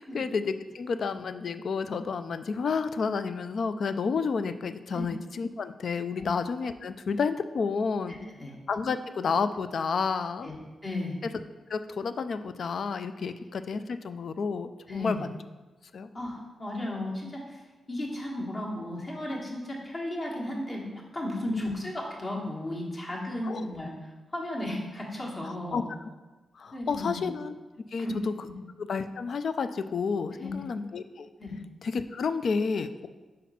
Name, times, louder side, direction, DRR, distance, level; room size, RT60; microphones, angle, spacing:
voice 1, 0.0-8.2 8.7-10.5 11.7-15.4 15.9-16.1 21.5-21.7 23.4-23.6 25.7-25.8 26.6-27.5 27.9-28.1 28.9-31.3 31.8-33.1, left 5 dB, 60° left, 11 dB, 0.3 m, -30 dB
voice 2, 8.1-8.5 10.4-10.6 10.8-11.2 14.9-15.2 16.1-20.9 21.1-25.9 26.7-27.3 28.0-28.2 30.4-30.5 31.4-31.6, left 1 dB, 30° left, -2 dB, 1.5 m, -35 dB
5.1 x 4.1 x 5.7 m, 1.2 s
wide cardioid pair, 120°, 0 cm